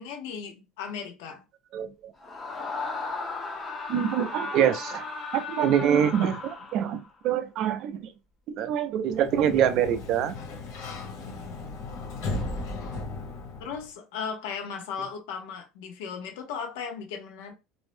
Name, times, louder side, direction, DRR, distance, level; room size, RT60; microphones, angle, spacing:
voice 1, 0.0-1.4 11.3-11.6 13.6-17.5, left 6 dB, 75° left, 0.8 m, -36 dB
voice 2, 1.7-2.1 3.9-5.1 5.3-8.1 8.5-10.4, right 9 dB, 40° right, 0.3 m, -25 dB
Screaming, 2.2-7.1, left 3 dB, 15° left, 0.5 m, -36 dB
Sliding door, 9.0-13.9, left 2 dB, 55° left, 1.0 m, -36 dB
2.6 x 2.0 x 3.1 m
cardioid pair, 175°, 0 cm